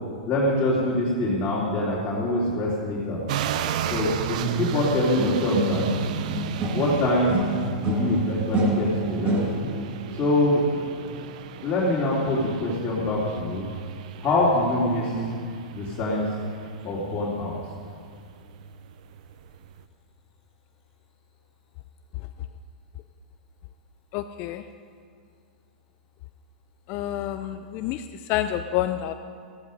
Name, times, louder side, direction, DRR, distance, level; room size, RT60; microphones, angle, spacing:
voice 1, 0.3-3.2 3.9-5.8 6.7-7.4 7.8-9.4 10.1-10.6 11.6-13.6 14.2-15.2 15.7-16.3 16.8-17.5, left 1 dB, 25° left, -8 dB, 3.4 m, -24 dB
sound 1, 3.3-19.8, right 10 dB, 60° right, 0.7 m, -35 dB
sound 2, 5.2-7.0 7.3-9.9, right 2 dB, 30° right, 2.7 m, -26 dB
voice 2, 24.1-24.6 26.9-28.0 28.3-29.1, left 12 dB, 45° left, 9 dB, 0.6 m, -28 dB
15.0 x 14.5 x 5.4 m, 2.2 s
hypercardioid pair, 110°, 5 cm